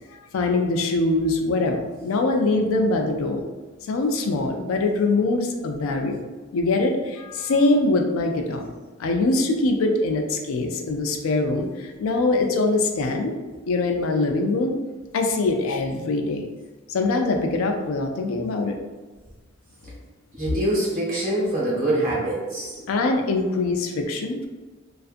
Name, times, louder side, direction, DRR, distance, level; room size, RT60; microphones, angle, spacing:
voice 1, 0.3-3.4 3.9-6.2 6.5-13.4 13.7-14.7 15.1-16.5 16.9-18.8 22.9-24.5, left 2 dB, 75° left, 3 dB, 0.4 m, -23 dB
voice 2, 20.3-22.7, right 1 dB, 40° right, -6 dB, 1.0 m, -24 dB
2.5 x 2.4 x 2.4 m, 1.3 s
head